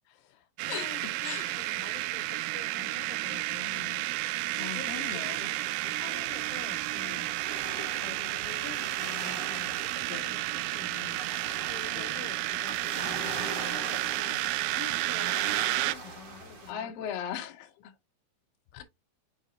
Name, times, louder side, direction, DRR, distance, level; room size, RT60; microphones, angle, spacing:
voice 1, 0.1-4.1 4.7-5.3 5.8-7.3 7.6-16.9 18.7-18.8, left 11 dB, 85° left, 3.2 m, -48 dB
sound 1, 0.6-15.9, right 18 dB, 85° right, 2.9 m, -32 dB
voice 2, 0.7-1.6 4.6-5.6 10.1-10.4 11.9-12.2 16.7-17.9 18.7-18.8, left 9 dB, 65° left, 2.3 m, -39 dB
sound 2, 4.7-16.7, right 3 dB, 40° right, 2.7 m, -42 dB
6.7 x 4.9 x 2.9 m
omnidirectional pair, 5.6 m